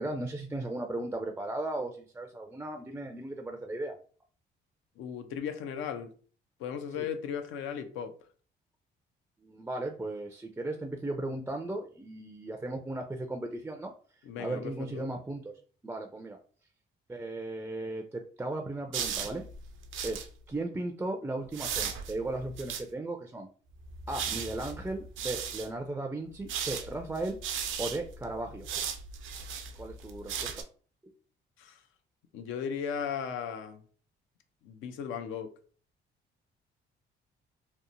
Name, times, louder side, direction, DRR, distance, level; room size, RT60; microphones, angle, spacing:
voice 1, 0.0-4.0 7.0-7.1 9.4-13.9 14.4-15.5 15.8-16.4 17.1-19.4 20.0-23.5 24.1-27.4 27.8-28.7 29.8-30.5 31.0-31.1, right 2 dB, 10° right, 3 dB, 0.3 m, -36 dB
voice 2, 5.0-6.1 6.6-8.1 14.2-15.1 31.6-31.8 32.3-33.8 34.6-35.5, left 7 dB, 90° left, 7 dB, 0.5 m, -36 dB
sound 1, 18.9-20.3 21.5-22.8 23.7-25.7 26.4-30.6, right 7 dB, 80° right, 0.4 m, -37 dB
2.9 x 2.1 x 2.5 m, 0.41 s
cardioid pair, 90°, 20 cm